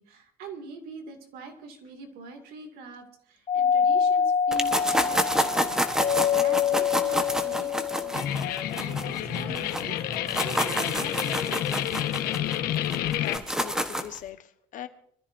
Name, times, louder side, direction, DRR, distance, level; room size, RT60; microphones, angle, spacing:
voice 1, 0.0-6.0 6.3-11.9, right 3 dB, 80° right, 5 dB, 2.6 m, -43 dB
Doorbell, 3.5-8.3, left 7 dB, 35° left, 0.7 m, -25 dB
sound 1, 4.5-9.8 10.1-14.2, equal, 5° right, 1.2 m, -28 dB
sound 2, 8.1-13.4, left 11 dB, 80° left, 1.4 m, -29 dB
voice 2, 13.2-14.9, left 11 dB, 60° left, 8 dB, 1.3 m, -41 dB
25.0 x 14.0 x 2.7 m, 0.66 s
cardioid pair, 125°, 15 cm